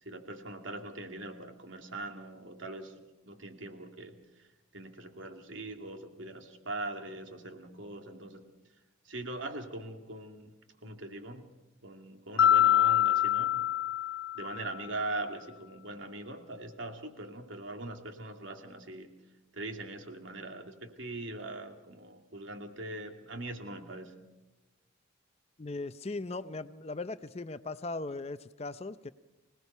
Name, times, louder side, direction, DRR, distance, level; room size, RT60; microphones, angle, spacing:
voice 1, 0.0-3.0 3.2-4.2 4.7-8.5 9.1-10.5 10.8-11.5 11.8-13.8 14.3-19.1 19.5-24.2, right 2 dB, 70° right, 4 dB, 2.4 m, -41 dB
Mallet percussion, 12.4-14.8, left 11 dB, 85° left, 1.5 m, -25 dB
voice 2, 25.6-29.1, left 3 dB, 30° left, 13 dB, 0.6 m, -38 dB
26.0 x 18.5 x 5.5 m, 1.0 s
head